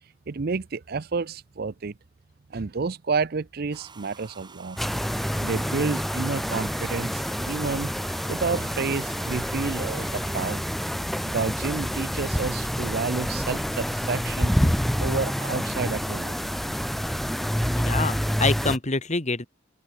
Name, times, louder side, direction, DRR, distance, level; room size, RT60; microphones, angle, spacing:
voice 1, 0.3-1.9 2.5-4.8 5.4-7.9 8.3-10.6 11.2-14.6 15.0-16.4, right 4 dB, 55° right, 0.6 m, -30 dB
Domestic sounds home sounds, 3.7-10.6, right 5 dB, 25° right, 3.6 m, -48 dB
sound 1, 4.8-18.8, equal, ahead, 0.9 m, -28 dB
sound 2, 9.4-18.6, equal, 20° left, 2.8 m, -49 dB
voice 2, 17.7-19.5, left 3 dB, 40° left, 2.0 m, -26 dB
open air
head